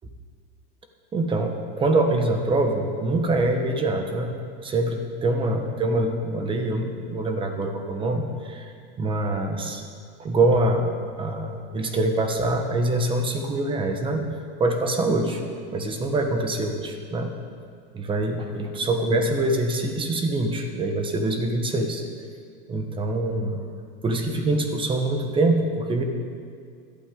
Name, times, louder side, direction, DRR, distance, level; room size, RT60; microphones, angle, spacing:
voice 1, 1.1-4.3 4.6-9.8 10.2-14.3 14.6-15.4 15.7-17.3 17.9-22.0 22.7-23.6 24.0-26.0, right 2 dB, 15° right, 4 dB, 1.2 m, -24 dB
16.5 x 12.0 x 3.8 m, 2.2 s
supercardioid pair, 155°, 30 cm